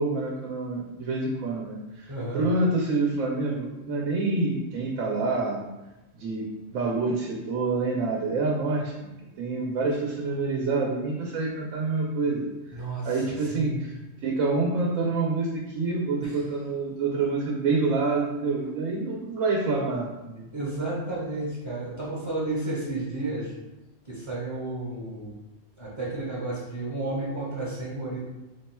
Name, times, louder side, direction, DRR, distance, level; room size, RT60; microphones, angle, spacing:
voice 1, 0.0-5.6 6.1-6.5 6.7-9.1 9.4-12.4 13.0-13.9 14.2-20.5, right 3 dB, 90° right, -1 dB, 1.0 m, -27 dB
voice 2, 2.1-2.5 12.7-13.8 16.2-16.4 20.5-23.5 24.0-25.3 25.8-28.2, right 2 dB, 30° right, -6 dB, 0.6 m, -32 dB
3.3 x 2.2 x 4.1 m, 1.0 s
omnidirectional pair, 1.3 m